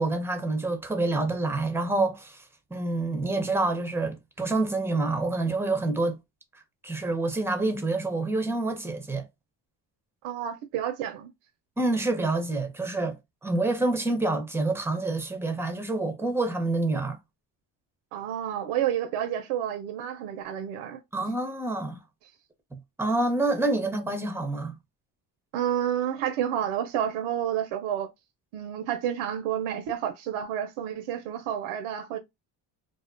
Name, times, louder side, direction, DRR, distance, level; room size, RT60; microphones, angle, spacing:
voice 1, 0.0-2.4 2.7-6.2 6.8-9.3 11.8-17.2 21.1-22.0 22.7-24.7, right 2 dB, 5° right, 0.6 m, -27 dB
voice 2, 10.2-11.3 18.1-21.0 25.5-28.1 28.5-32.2, right 10 dB, 85° right, 0.5 m, -30 dB
2.5 x 2.1 x 2.4 m
supercardioid pair, 75°, 48 cm